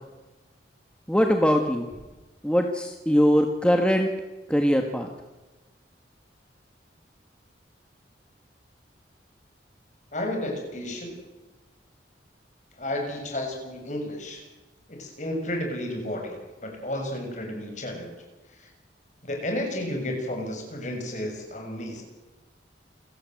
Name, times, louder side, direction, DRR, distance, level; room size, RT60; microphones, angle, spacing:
voice 1, 1.1-1.9 2.4-4.1 4.5-5.1, equal, 5° left, 4 dB, 1.6 m, -21 dB
voice 2, 10.1-11.2 12.7-14.5 14.9-18.1 18.5-18.7 19.2-22.0, left 1 dB, 40° left, 2 dB, 6.8 m, -32 dB
28.0 x 17.0 x 7.9 m, 1.2 s
head